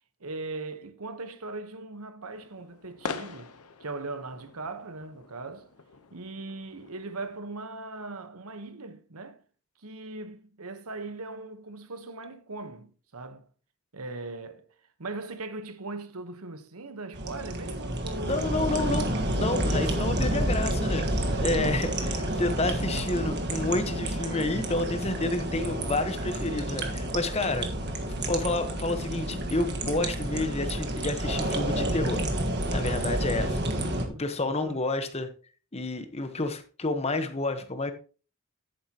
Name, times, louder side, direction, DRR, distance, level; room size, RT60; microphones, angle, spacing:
voice 1, 0.2-3.5 3.8-5.7 6.1-9.4 9.8-13.5 13.9-14.7 15.0-18.5 21.3-21.6 27.1-27.2 34.0-34.8, right 3 dB, 75° right, 1.1 m, -39 dB
sound 1, 2.3-7.4, left 5 dB, 80° left, 1.0 m, -43 dB
sound 2, 17.1-34.0, right 1 dB, 50° right, 1.5 m, -29 dB
voice 2, 18.2-19.1 19.4-27.7 28.3-32.2 32.7-33.6 34.2-35.3 35.7-37.9, left 2 dB, 30° left, 1.1 m, -30 dB
11.0 x 9.2 x 2.9 m
head